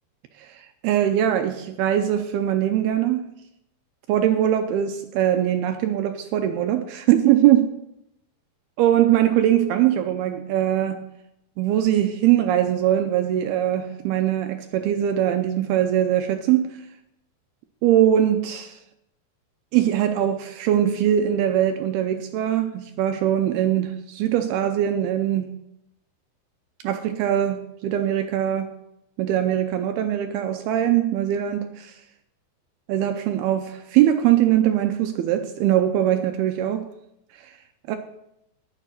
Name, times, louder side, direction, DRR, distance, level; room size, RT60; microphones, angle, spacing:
voice 1, 0.4-3.3 4.1-7.7 8.8-11.1 11.6-16.8 17.8-18.8 19.7-25.5 26.8-28.8 29.2-32.0 32.9-36.9 37.4-37.5 37.9-38.0, right 11 dB, 85° right, 2.3 m, -21 dB
11.0 x 9.8 x 4.6 m
omnidirectional pair, 5.1 m